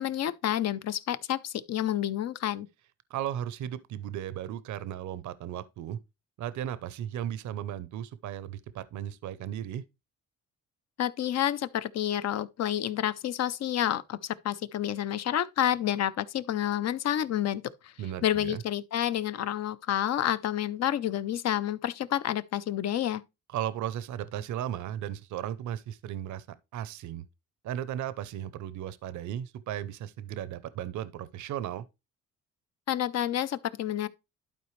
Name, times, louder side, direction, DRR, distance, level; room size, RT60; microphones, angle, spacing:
voice 1, 0.0-2.7 11.0-17.9 18.2-23.2 32.9-34.1, left 11 dB, 60° left, 0.6 m, -29 dB
voice 2, 3.1-6.0 6.4-9.8 18.0-18.6 23.5-27.3 27.6-31.8, right 11 dB, 70° right, 0.6 m, -36 dB
11.5 x 4.3 x 3.2 m
cardioid pair, 90°, 30 cm